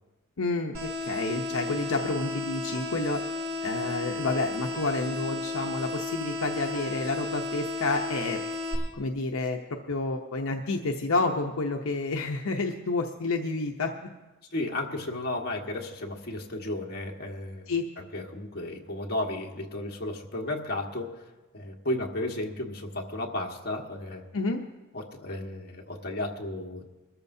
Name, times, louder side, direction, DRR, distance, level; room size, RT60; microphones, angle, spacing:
voice 1, 0.4-3.3 3.6-8.4 8.9-14.1 17.7-17.8 24.3-24.6, left 3 dB, 75° left, 2 dB, 0.8 m, -29 dB
sound 1, 0.7-8.7, left 3 dB, 75° right, 4.3 m, -33 dB
voice 2, 14.5-17.7 18.0-24.2 24.9-26.8, left 1 dB, 50° left, -1 dB, 1.6 m, -34 dB
23.0 x 13.5 x 2.7 m, 1.1 s
head